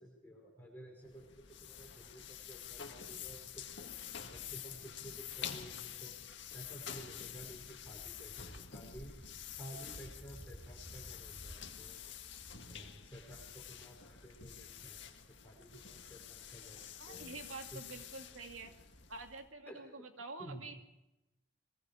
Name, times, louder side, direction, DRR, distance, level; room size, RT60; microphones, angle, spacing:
voice 1, 0.0-3.7 4.3-6.2 6.5-9.1 9.5-12.1 12.7-17.4 17.7-17.9 19.7-19.8 20.4-20.6, right 1 dB, 10° left, -3 dB, 5.3 m, -53 dB
sound 1, 1.0-19.5, left 9 dB, 60° left, 1.8 m, -48 dB
sound 2, 1.7-19.3, equal, 20° right, 5.8 m, -60 dB
voice 2, 17.0-18.7 19.1-20.8, right 3 dB, 85° right, 4 dB, 2.6 m, -47 dB
23.5 x 23.0 x 5.0 m, 0.94 s
head